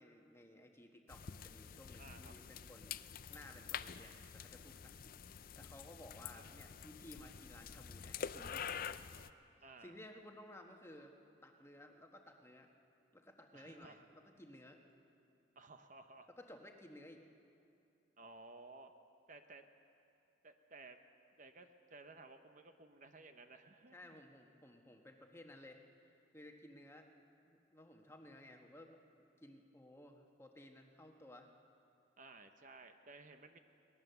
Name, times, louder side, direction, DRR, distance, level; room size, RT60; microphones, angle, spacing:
voice 1, 0.0-3.0 3.3-8.8 9.8-11.1 11.4-12.7 13.1-14.8 16.3-17.2 23.9-25.8 26.3-27.1 27.4-29.0 29.4-31.5, left 1 dB, 15° left, 3 dB, 1.3 m, -57 dB
sound 1, 1.1-9.3, left 7 dB, 45° left, 0.5 m, -47 dB
voice 2, 2.0-2.3 6.3-6.4 9.6-10.0 13.5-14.0 15.6-16.3 18.2-18.9 19.3-19.6 20.4-21.0 21.4-24.2 32.2-33.6, right 3 dB, 40° right, 7 dB, 0.9 m, -56 dB
22.5 x 19.5 x 6.9 m, 2.7 s
head